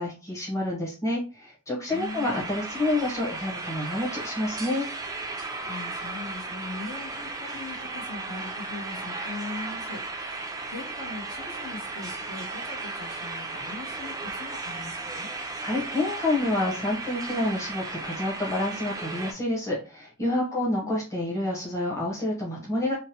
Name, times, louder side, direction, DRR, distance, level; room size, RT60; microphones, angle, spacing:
voice 1, 0.0-4.9 15.4-23.0, left 1 dB, 15° left, -3 dB, 0.8 m, -28 dB
voice 2, 1.9-2.5 5.6-15.3 20.4-21.0, left 3 dB, 65° left, 1 dB, 0.8 m, -40 dB
sound 1, 1.9-19.3, right 3 dB, 15° right, 0.3 m, -35 dB
2.8 x 2.0 x 2.8 m, 0.32 s
head